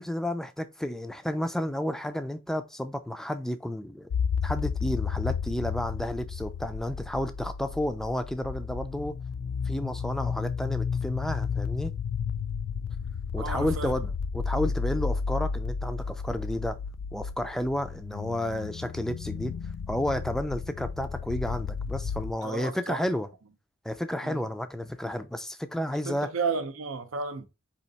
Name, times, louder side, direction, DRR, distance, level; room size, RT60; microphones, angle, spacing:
voice 1, 0.0-4.1 4.4-9.2 9.6-11.9 13.3-16.8 17.1-19.5 19.9-23.3 23.8-26.3, left 1 dB, ahead, 0.4 m, -31 dB
sound 1, 4.1-22.3, left 5 dB, 75° left, 0.3 m, -32 dB
voice 2, 13.4-13.9 22.4-23.0 24.2-24.4 26.0-27.5, right 5 dB, 75° right, 0.7 m, -33 dB
4.4 x 2.8 x 4.0 m
head